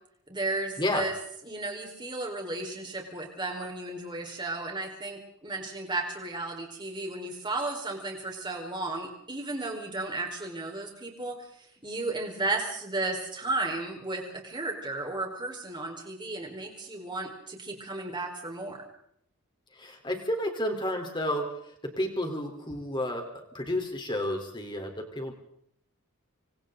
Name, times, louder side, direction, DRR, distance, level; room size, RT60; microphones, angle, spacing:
voice 1, 0.3-1.1 1.4-18.8, right 2 dB, 20° right, 1 dB, 4.5 m, -34 dB
voice 2, 19.8-21.4 22.0-23.2 23.5-25.3, left 1 dB, 20° left, 3 dB, 3.8 m, -31 dB
27.0 x 24.5 x 3.9 m, 0.71 s
head